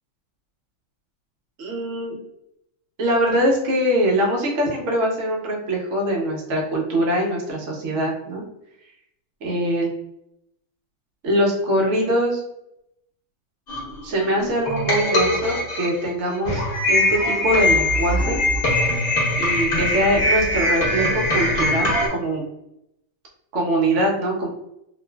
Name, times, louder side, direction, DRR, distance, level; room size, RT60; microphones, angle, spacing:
voice 1, 1.6-2.1 3.0-8.4 9.4-9.9 11.2-12.4 14.0-16.6 16.9-18.4 19.4-22.4 23.5-24.5, right 1 dB, 90° right, -1 dB, 0.6 m, -22 dB
sound 1, 13.7-22.1, left 1 dB, 55° left, 0.6 m, -21 dB
3.0 x 2.4 x 2.2 m, 0.81 s
omnidirectional pair, 2.2 m